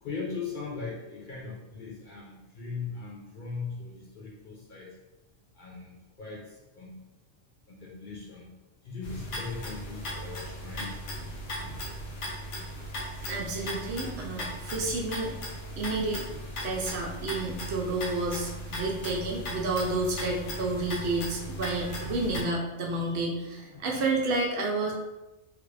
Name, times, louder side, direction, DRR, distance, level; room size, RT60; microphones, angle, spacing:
voice 1, 0.0-4.9 5.6-6.4 6.8-7.0 7.7-8.5 8.9-11.0 19.0-19.1 20.3-22.5 22.9-23.1 23.6-24.0, left 4 dB, 55° left, -3 dB, 0.6 m, -40 dB
sound 1, 9.0-22.4, equal, 75° left, 1.1 m, -37 dB
voice 2, 13.2-15.3 15.8-16.2 16.6-24.9, right 2 dB, 65° right, -1 dB, 0.9 m, -30 dB
3.3 x 2.4 x 3.1 m, 1.0 s
omnidirectional pair, 1.3 m